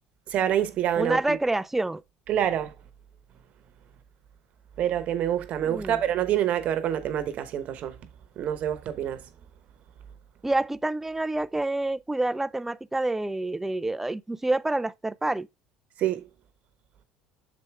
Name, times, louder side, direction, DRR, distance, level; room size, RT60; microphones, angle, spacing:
voice 1, 0.3-1.4 2.3-2.7 4.8-8.0 8.4-9.2 16.0-16.3, right 10 dB, 55° right, 0.9 m, -26 dB
voice 2, 1.0-2.0 5.6-6.0 10.4-15.5, right 2 dB, 10° right, 0.3 m, -27 dB
6.8 x 4.6 x 3.3 m
supercardioid pair, 85°, 3 cm